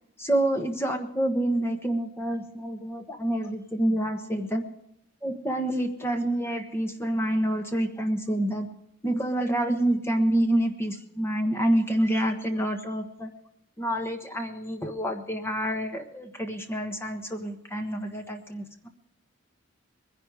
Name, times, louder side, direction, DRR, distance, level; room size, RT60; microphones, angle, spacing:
voice 1, 0.2-4.6 5.2-8.7 9.0-13.3 13.8-18.6, right 1 dB, 10° left, 5 dB, 1.3 m, -27 dB
21.0 x 10.5 x 4.9 m, 0.80 s
head